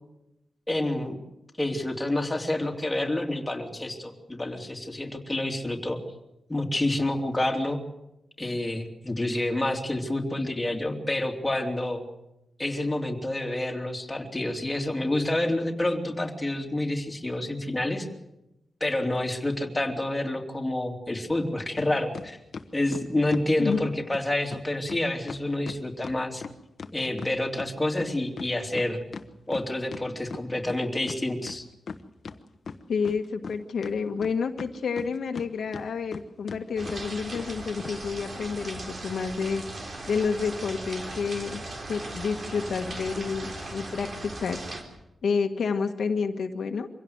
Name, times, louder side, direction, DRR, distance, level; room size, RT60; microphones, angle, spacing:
voice 1, 0.7-1.2 1.6-6.0 6.5-7.8 8.4-12.0 12.6-18.1 18.8-22.4 22.7-26.4 26.9-29.0 29.5-31.7, left 1 dB, 15° left, 1 dB, 3.0 m, -28 dB
sound 1, 21.8-21.9 22.1-23.9 24.1-24.2 24.5-24.6 24.9-25.0 25.3-27.7 28.0-30.8 31.1-31.2 31.5-32.4 32.7-33.5 33.8-35.5 35.7-36.2 36.5-36.6 36.9-37.0 37.3-37.5 37.8-37.9, left 5 dB, 60° left, 1.2 m, -38 dB
voice 2, 32.9-39.6 40.1-41.6 41.9-44.6 45.2-46.9, left 5 dB, 75° left, 4 dB, 1.5 m, -29 dB
sound 2, 36.8-44.8, right 2 dB, 45° right, 4.0 m, -38 dB
25.0 x 16.5 x 8.1 m, 0.92 s
wide cardioid pair, 125°, 0 cm